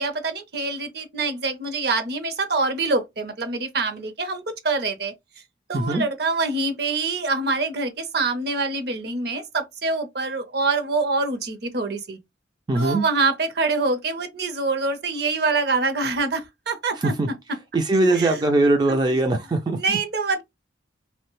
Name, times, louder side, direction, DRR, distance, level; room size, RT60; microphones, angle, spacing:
voice 1, 0.0-5.1 5.7-12.2 12.7-17.1 18.1-19.0 19.8-20.4, right 3 dB, 60° right, 0.7 m, -25 dB
voice 2, 5.7-6.0 12.7-13.0 17.0-17.3 17.7-20.0, right 2 dB, 20° right, 0.3 m, -21 dB
3.1 x 2.1 x 2.9 m
head